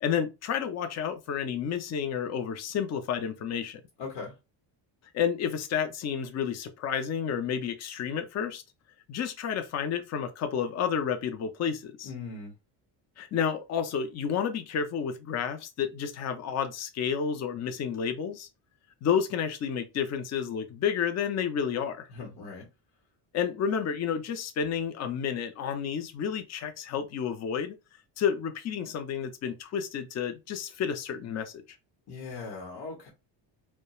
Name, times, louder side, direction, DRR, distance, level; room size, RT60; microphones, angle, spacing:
voice 1, 0.0-3.8 5.1-8.6 9.1-12.1 13.2-18.5 19.0-22.1 23.3-27.8 28.2-31.6, left 7 dB, 40° left, 0.5 m, -30 dB
voice 2, 4.0-4.3 12.0-12.5 22.1-22.7 32.1-33.1, left 4 dB, 55° left, 1.0 m, -39 dB
2.3 x 2.2 x 2.9 m
cardioid pair, 130°, 45 cm